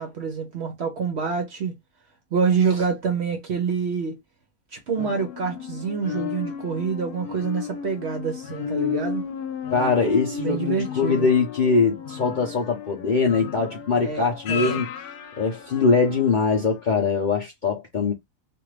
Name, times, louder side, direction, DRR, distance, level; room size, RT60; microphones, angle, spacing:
voice 1, 0.0-1.7 2.3-4.2 4.7-9.2 10.4-11.3 13.9-14.8, right 6 dB, 60° right, 0.7 m, -26 dB
sound 1, 5.0-16.4 16.9-17.0, left 7 dB, 80° left, 1.2 m, -34 dB
voice 2, 9.7-14.9 15.4-18.1, left 4 dB, 50° left, 0.6 m, -22 dB
2.6 x 2.5 x 3.1 m
omnidirectional pair, 1.6 m